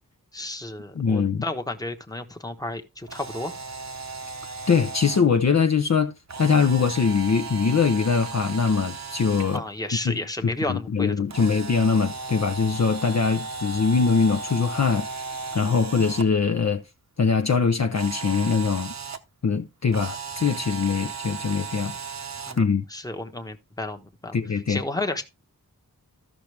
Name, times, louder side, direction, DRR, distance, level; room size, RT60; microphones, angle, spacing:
voice 1, 0.3-3.5 9.5-11.1 22.5-24.4 24.7-25.2, left 2 dB, 10° left, 1.0 m, -32 dB
voice 2, 0.9-1.4 4.7-6.1 6.4-9.6 10.0-15.2 15.5-16.8 17.2-18.9 19.4-21.9 22.6-22.8 24.3-24.8, left 5 dB, 45° left, 0.6 m, -22 dB
Camera, 3.0-5.2 6.3-9.6 11.3-16.2 17.9-19.2 19.9-22.6, right 4 dB, 50° right, 0.9 m, -36 dB
13.5 x 5.8 x 3.3 m
wide cardioid pair, 70°, 37 cm